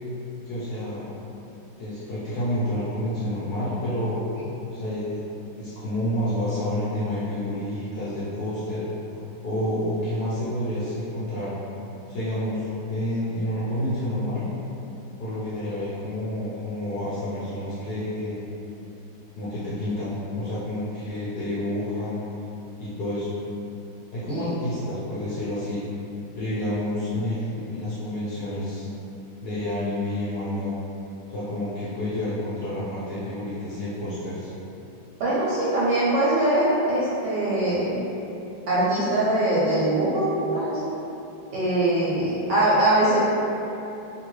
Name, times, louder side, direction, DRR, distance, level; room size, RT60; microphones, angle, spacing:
voice 1, 0.5-1.1 1.8-4.2 4.7-5.2 5.6-11.5 12.1-14.5 15.2-18.4 19.3-22.2 22.8-23.3 24.1-25.8 26.3-28.9 29.4-30.7 31.3-34.5, left 1 dB, 70° left, -10 dB, 1.0 m, -29 dB
voice 2, 35.2-38.0 38.7-40.8 41.5-43.2, right 1 dB, 75° right, -9 dB, 1.0 m, -22 dB
2.9 x 2.7 x 3.0 m, 3.0 s
omnidirectional pair, 2.3 m